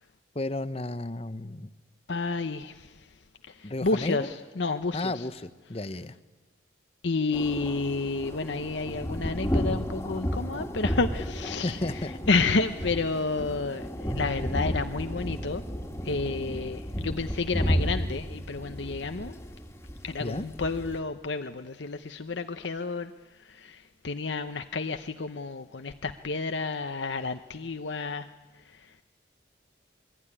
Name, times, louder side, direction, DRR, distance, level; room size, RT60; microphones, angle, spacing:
voice 1, 0.3-1.7 3.6-4.3 4.9-6.2 11.6-12.1 20.2-20.5, left 2 dB, 30° left, 14 dB, 0.8 m, -33 dB
voice 2, 2.1-2.9 3.5-5.2 7.0-11.8 12.3-15.6 16.0-19.4 20.0-23.1 23.4-28.3, left 3 dB, 70° left, 8 dB, 0.8 m, -30 dB
sound 1, 7.3-21.0, equal, 15° left, 1.8 m, -33 dB
27.0 x 21.5 x 10.0 m, 1.3 s
head